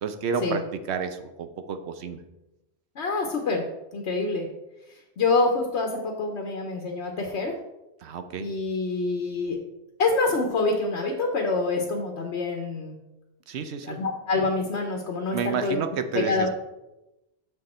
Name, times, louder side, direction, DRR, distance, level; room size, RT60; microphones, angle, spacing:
voice 1, 0.0-0.6 0.9-2.2 8.0-8.5 13.5-14.0 15.3-16.5, right 6 dB, 80° right, 9 dB, 1.0 m, -30 dB
voice 2, 3.0-3.6 3.9-4.5 5.2-7.5 8.4-9.6 10.0-13.0 13.8-15.8 16.1-16.5, left 3 dB, 85° left, 2 dB, 1.2 m, -26 dB
6.9 x 6.5 x 4.3 m, 0.96 s
omnidirectional pair, 1.1 m